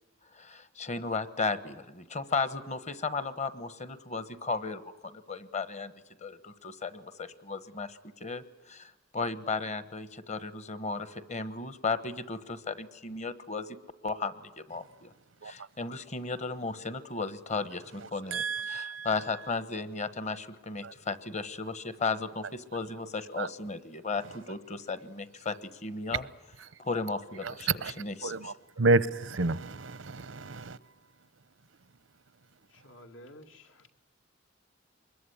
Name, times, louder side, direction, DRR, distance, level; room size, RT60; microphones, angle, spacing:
voice 1, 0.3-5.9 6.2-13.8 14.0-15.1 15.4-26.3 26.8-28.5, left 4 dB, 40° left, 1.2 m, -35 dB
voice 2, 18.3-19.1 20.8-20.9 23.4-23.5 27.4-27.5 27.8-27.9 28.2-30.8, right 3 dB, 90° right, 0.8 m, -30 dB
voice 3, 32.7-33.9, left 1 dB, 80° left, 2.4 m, -52 dB
25.0 x 21.5 x 9.9 m
head